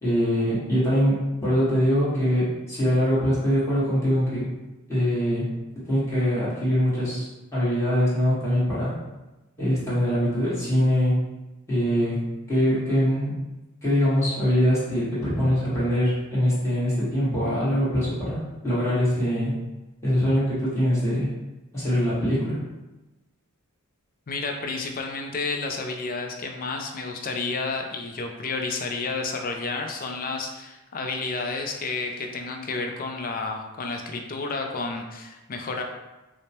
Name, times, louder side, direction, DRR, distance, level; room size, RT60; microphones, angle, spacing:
voice 1, 0.0-4.4 4.9-5.5 5.9-9.0 9.6-11.2 11.7-13.3 13.8-19.6 20.0-21.3 21.7-22.6, equal, 15° left, -11 dB, 1.3 m, -23 dB
voice 2, 24.3-35.8, left 3 dB, 40° left, 3 dB, 0.4 m, -31 dB
4.9 x 2.1 x 2.8 m, 1.1 s
head